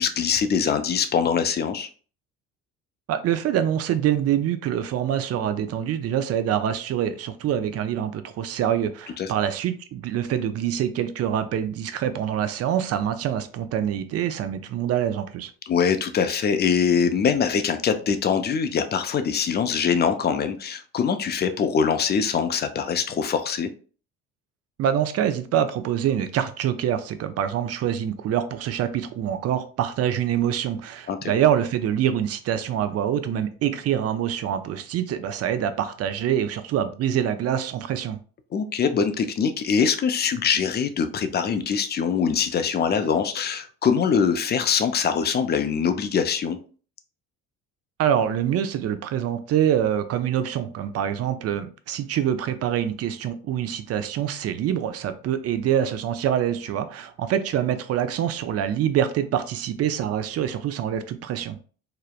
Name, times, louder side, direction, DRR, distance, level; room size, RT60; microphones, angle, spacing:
voice 1, 0.0-1.9 9.2-9.3 15.7-23.7 31.1-31.3 38.5-46.6, left 6 dB, 30° left, 0.4 m, -23 dB
voice 2, 3.1-15.5 24.8-38.2 48.0-61.6, right 10 dB, 45° right, 0.4 m, -25 dB
2.9 x 2.0 x 2.3 m
hypercardioid pair, 60°, 35 cm